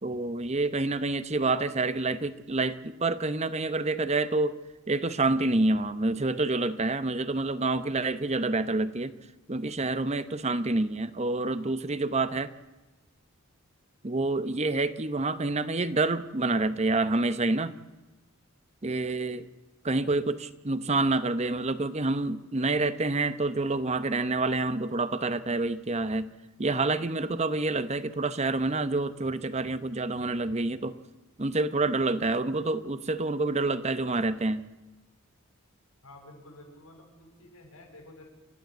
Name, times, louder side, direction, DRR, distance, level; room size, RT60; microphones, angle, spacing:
voice 1, 0.0-4.6 4.9-9.1 9.5-12.5 14.0-17.8 18.8-19.4 19.8-26.3 26.6-31.0 31.4-34.6, right 2 dB, 30° right, 13 dB, 0.8 m, -28 dB
voice 2, 36.0-38.2, left 1 dB, 85° left, 1 dB, 7.8 m, -51 dB
29.5 x 13.5 x 8.0 m, 1.1 s
head